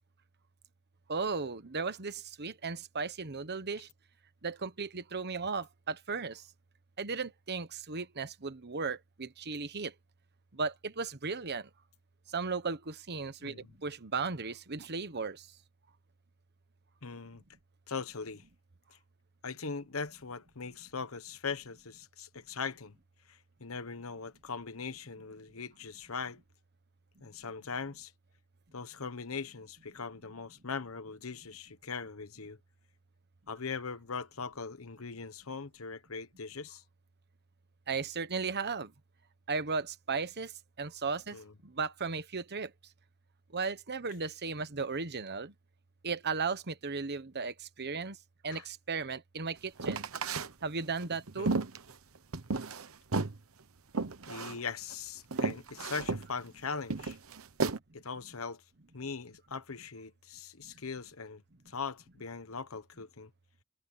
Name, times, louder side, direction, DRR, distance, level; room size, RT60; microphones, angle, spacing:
voice 1, 1.1-3.9 4.4-6.4 7.0-9.9 10.5-11.7 12.3-15.5 37.9-38.9 39.5-40.5 40.8-41.4 41.6-42.7 43.5-45.5 46.0-48.2 48.4-50.1 50.6-51.6 60.6-60.7, right 4 dB, 50° right, 1.3 m, -36 dB
voice 2, 13.4-13.7 17.0-17.4 17.9-18.4 18.9-19.0 19.4-22.9 23.3-26.4 27.2-28.1 28.7-32.6 33.5-36.8 41.3-41.5 48.5-48.6 51.4-51.6 54.3-57.2 57.9-58.6 58.9-63.3, left 5 dB, 75° left, 1.1 m, -40 dB
sound 1, 49.8-50.5 51.0-52.9 53.1-53.4 53.9-54.6 54.9-55.0 55.3-56.3 56.9-57.8, right 3 dB, 75° right, 1.1 m, -33 dB
head